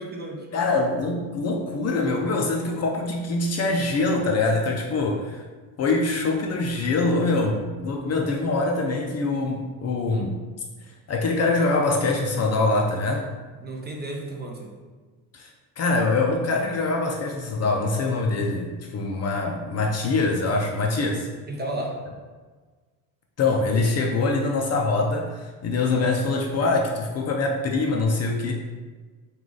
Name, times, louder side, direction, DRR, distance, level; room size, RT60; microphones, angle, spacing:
voice 1, 0.0-0.5 13.6-14.7 21.5-21.9, right 1 dB, 25° right, 0 dB, 0.6 m, -33 dB
voice 2, 0.5-5.4 5.8-10.4 11.1-13.3 15.3-15.5 15.8-21.3 23.4-28.5, left 3 dB, 40° left, 1 dB, 0.4 m, -24 dB
4.6 x 2.4 x 3.9 m, 1.4 s
cardioid pair, 135°, 42 cm